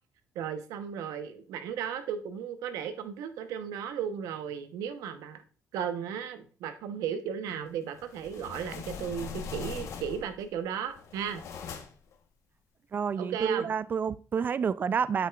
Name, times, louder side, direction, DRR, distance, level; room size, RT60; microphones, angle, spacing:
voice 1, 0.3-5.4 5.7-11.4 13.2-13.7, right 8 dB, 75° right, 0.9 m, -35 dB
sound 1, 7.9-10.4 10.9-12.1, left 6 dB, 60° left, 1.0 m, -41 dB
voice 2, 12.9-15.3, right 6 dB, 35° right, 0.3 m, -29 dB
8.4 x 5.8 x 2.3 m
cardioid pair, 105°, 6 cm